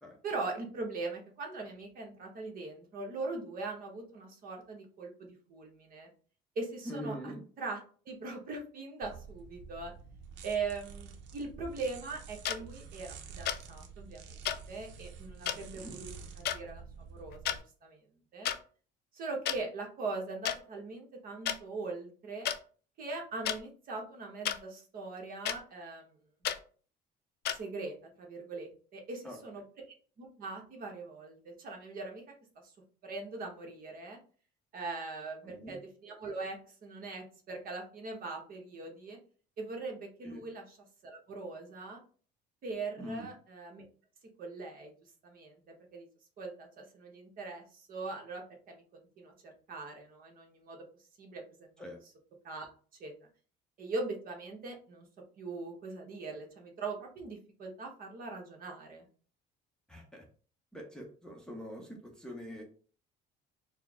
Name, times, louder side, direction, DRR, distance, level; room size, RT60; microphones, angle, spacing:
voice 1, 0.2-6.1 6.5-9.9 10.4-18.0 18.3-18.5 19.1-22.5 23.0-26.1 27.5-32.2 32.6-32.7 33.0-34.2 34.7-39.2 39.6-40.8 41.0-42.0 42.6-43.9 44.4-46.1 46.4-50.8 51.2-51.9 52.4-52.7 53.0-53.1 53.8-55.1 55.4-59.0, right 3 dB, 50° right, 1 dB, 1.1 m, -41 dB
voice 2, 6.9-7.4 15.7-15.9 29.2-29.4 35.4-35.8 40.2-40.4 43.0-43.3 51.8-52.0 59.9-60.2 60.7-62.6, equal, 5° left, 0 dB, 0.7 m, -43 dB
sound 1, 9.0-17.6, right 6 dB, 75° right, 0.6 m, -49 dB
sound 2, 12.4-12.6 13.5-13.6 14.4-14.6 15.5-15.6 16.4-16.6 17.3-17.6 18.4-18.6 19.5-19.6 20.4-20.6 21.5-21.6 22.4-22.6 23.4-23.6 24.4-24.6 25.4-25.6 26.4-26.6 27.4-27.6, left 10 dB, 60° left, 0.4 m, -32 dB
4.4 x 2.1 x 3.5 m, 0.42 s
cardioid pair, 130°, 19 cm